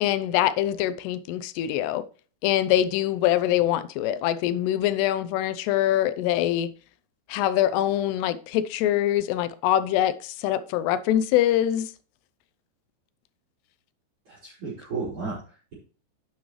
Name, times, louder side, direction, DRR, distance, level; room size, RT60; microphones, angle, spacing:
voice 1, 0.0-2.0 2.4-6.7 7.3-11.9, left 12 dB, 80° left, 2.6 m, -24 dB
voice 2, 14.3-15.7, right 4 dB, 30° right, 5.0 m, -34 dB
10.0 x 8.7 x 3.1 m
omnidirectional pair, 4.9 m